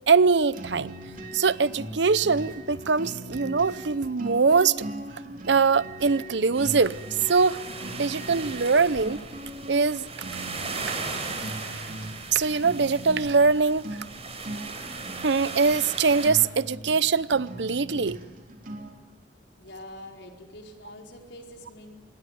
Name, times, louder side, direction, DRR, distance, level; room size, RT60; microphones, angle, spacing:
voice 1, 0.1-0.9 1.3-4.9 5.5-7.0 7.3-7.6 7.9-9.2 9.7-10.0 11.6-11.7 12.3-13.9 15.2-18.2, right 4 dB, 75° right, 0.7 m, -22 dB
sound 1, 0.5-19.1, right 1 dB, 50° right, 3.4 m, -40 dB
sound 2, 6.5-16.3, right 4 dB, 35° right, 5.1 m, -37 dB
voice 2, 19.6-21.9, left 1 dB, 80° left, 4.9 m, -45 dB
26.0 x 20.5 x 9.6 m
head